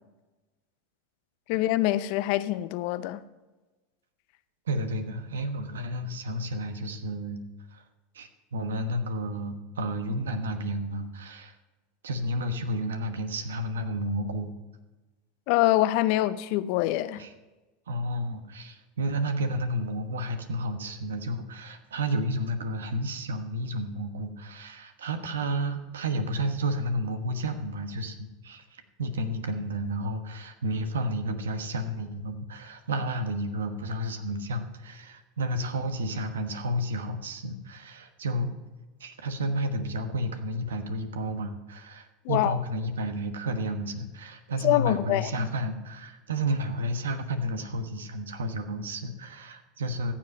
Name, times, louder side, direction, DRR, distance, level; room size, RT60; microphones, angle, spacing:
voice 1, 1.5-3.2 15.5-17.2 42.2-42.6 44.6-45.3, left 15 dB, 60° left, 0.6 m, -25 dB
voice 2, 4.7-7.4 7.7-7.8 8.1-11.6 12.0-14.5 17.1-17.3 17.9-38.5 39.0-50.1, right 1 dB, 85° right, 1.1 m, -31 dB
14.5 x 7.4 x 5.3 m
hypercardioid pair, 85°, 0 cm